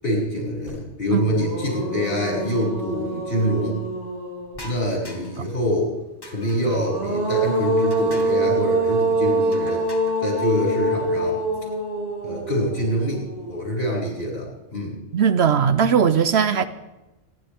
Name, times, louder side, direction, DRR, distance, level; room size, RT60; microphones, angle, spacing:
voice 1, 0.0-3.8 4.6-5.9 6.3-9.8 10.2-11.4 12.2-15.0, equal, 55° left, -4 dB, 6.7 m, -25 dB
sound 1, 0.7-0.8 1.2-4.8 6.5-13.7, right 2 dB, 85° right, 7.4 m, -25 dB
sound 2, 4.5-5.5 6.2-6.8 7.9-8.5 9.5-10.3, equal, 20° left, 1.6 m, -42 dB
voice 2, 15.1-16.6, right 7 dB, 65° right, 11 dB, 0.9 m, -18 dB
27.0 x 11.0 x 3.6 m, 1.0 s
omnidirectional pair, 1.2 m